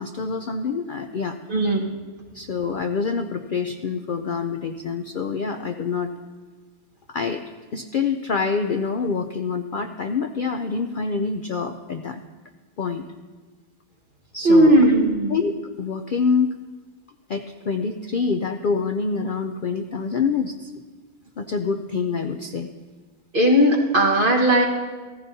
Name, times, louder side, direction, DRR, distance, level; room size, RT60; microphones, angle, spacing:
voice 1, 0.0-1.4 2.3-6.1 7.1-7.4 7.7-12.2 12.8-13.1 14.3-14.9 15.3-16.6 17.3-20.7 21.4-22.7, left 5 dB, 80° left, 6 dB, 0.4 m, -26 dB
voice 2, 1.5-1.9 14.4-15.3 23.3-24.6, right 1 dB, 40° right, -2 dB, 1.6 m, -17 dB
16.0 x 14.5 x 2.7 m, 1.4 s
omnidirectional pair, 1.5 m